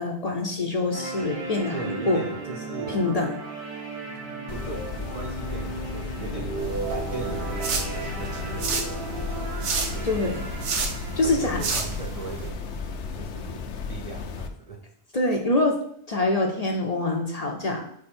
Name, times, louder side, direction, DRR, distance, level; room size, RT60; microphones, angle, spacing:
voice 1, 0.0-2.2 2.9-3.4 10.0-10.4 11.1-11.6 15.1-15.8 16.1-17.8, left 2 dB, 40° left, 2 dB, 0.7 m, -25 dB
sound 1, 0.9-12.9, right 3 dB, 65° right, 1.5 m, -36 dB
voice 2, 1.7-3.1 4.5-6.6 6.9-10.6 11.2-12.7 13.1-14.8, right 3 dB, 40° right, 1 dB, 0.6 m, -39 dB
sound 2, 4.5-14.5, left 5 dB, 75° left, 0.9 m, -35 dB
sound 3, 6.6-12.5, right 4 dB, 90° right, 1.2 m, -32 dB
4.9 x 4.8 x 4.3 m, 0.71 s
omnidirectional pair, 1.2 m